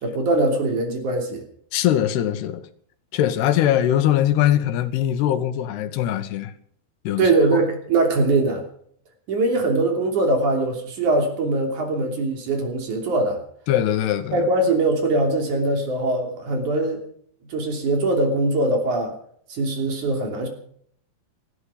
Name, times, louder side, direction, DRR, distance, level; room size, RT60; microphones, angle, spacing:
voice 1, 0.0-1.4 7.2-8.6 9.3-13.4 14.3-17.0 17.5-19.1 19.5-20.5, right 2 dB, 50° right, 4.2 m, -22 dB
voice 2, 1.7-2.7 3.1-6.5 7.1-7.3 13.7-14.5, left 11 dB, 85° left, 3.3 m, -21 dB
18.5 x 15.0 x 5.0 m
omnidirectional pair, 4.6 m